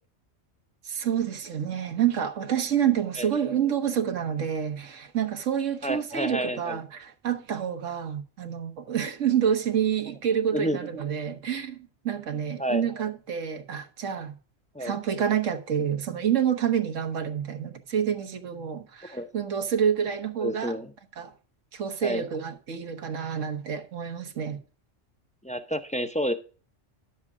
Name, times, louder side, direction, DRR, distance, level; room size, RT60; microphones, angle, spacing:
voice 1, 0.8-14.4 14.8-20.8 21.2-21.3 21.7-24.6, right 8 dB, 90° right, 1.5 m, -28 dB
voice 2, 5.8-6.8 10.5-10.8 12.6-12.8 14.7-15.0 19.1-19.3 20.4-20.9 22.0-22.2 25.4-26.3, equal, 10° left, 0.3 m, -29 dB
11.0 x 7.3 x 3.6 m
omnidirectional pair, 1.3 m